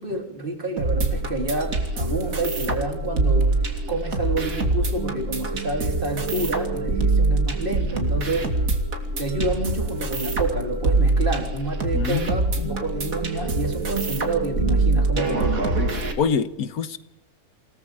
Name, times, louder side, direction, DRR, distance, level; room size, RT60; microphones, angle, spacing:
voice 1, 0.0-3.6 3.9-8.6 9.2-15.7, right 2 dB, 35° right, 3 dB, 3.7 m, -29 dB
sound 1, 0.8-16.1, right 2 dB, 70° right, 3.0 m, -24 dB
voice 2, 11.9-12.8 16.2-17.0, left 6 dB, 80° left, 13 dB, 1.7 m, -26 dB
27.5 x 18.5 x 5.0 m, 0.85 s
omnidirectional pair, 1.5 m